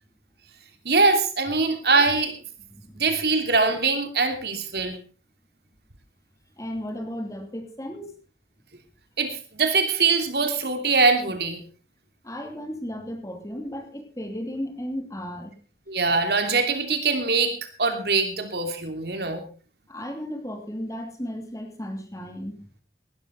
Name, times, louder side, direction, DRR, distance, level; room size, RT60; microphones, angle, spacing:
voice 1, 0.8-2.3 2.9-5.0 9.2-11.6 15.9-19.4, right 4 dB, 65° right, 7 dB, 2.8 m, -23 dB
voice 2, 2.7-3.0 6.6-8.1 12.2-15.5 19.9-22.6, equal, 20° left, 5 dB, 2.9 m, -34 dB
18.0 x 12.5 x 4.2 m, 0.36 s
head